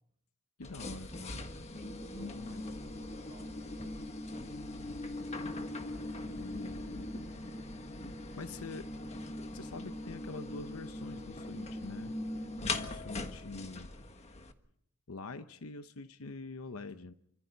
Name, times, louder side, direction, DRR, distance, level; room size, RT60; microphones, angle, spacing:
voice 1, 0.6-1.5 2.2-2.7 6.2-7.4 8.4-8.9 9.5-12.2 12.6-13.9 15.1-17.1, left 3 dB, 75° left, 0.9 m, -45 dB
sound 1, 0.6-14.5, left 2 dB, 30° left, 1.4 m, -41 dB
voice 2, 2.0-4.2 4.4-5.0 8.2-8.4, right 1 dB, 25° right, 5.5 m, -60 dB
29.5 x 25.0 x 4.1 m
head